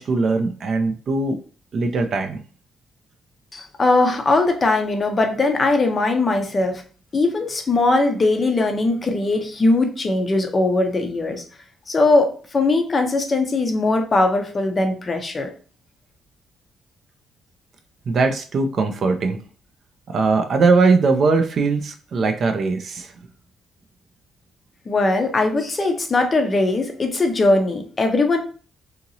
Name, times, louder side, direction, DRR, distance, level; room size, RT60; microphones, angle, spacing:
voice 1, 0.0-1.4 1.7-2.4 18.1-19.4 20.1-23.1, right 4 dB, 40° right, 6 dB, 0.4 m, -20 dB
voice 2, 3.5-6.8 7.1-11.4 11.9-15.5 24.9-28.4, left 2 dB, 25° left, 4 dB, 0.5 m, -20 dB
2.8 x 2.8 x 2.6 m, 0.39 s
cardioid pair, 180°, 0 cm